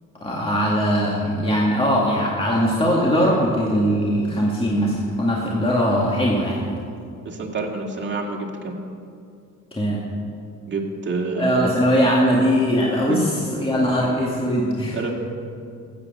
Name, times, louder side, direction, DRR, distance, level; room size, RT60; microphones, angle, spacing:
voice 1, 0.2-6.7 9.7-10.0 11.4-13.3 13.6-15.1, equal, 20° left, -3 dB, 2.0 m, -20 dB
voice 2, 7.2-8.8 10.7-11.7 13.1-13.2 14.9-15.1, right 3 dB, 40° right, 0 dB, 2.3 m, -27 dB
15.5 x 8.4 x 6.6 m, 2.4 s
cardioid pair, 90°, 30 cm